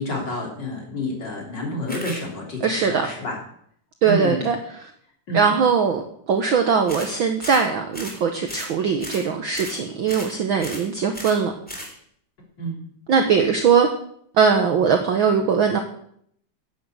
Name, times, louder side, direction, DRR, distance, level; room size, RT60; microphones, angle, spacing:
voice 1, 0.0-3.4 4.0-4.5 5.3-5.5 12.6-12.8, left 1 dB, 35° left, 0 dB, 3.6 m, -29 dB
sound 1, 1.9-2.2 6.9-7.1 7.4-7.7 7.9-8.2 8.5-8.7 9.0-9.3 9.5-9.8 10.1-10.3 10.6-10.9 11.1-11.4 11.7-11.9, equal, 5° left, 2.9 m, -35 dB
voice 2, 2.6-3.1 4.0-4.9 5.3-6.0 6.3-11.5 13.1-13.9 14.3-15.8, right 6 dB, 75° right, 5 dB, 1.1 m, -20 dB
10.5 x 8.5 x 7.9 m, 0.67 s
omnidirectional pair, 3.7 m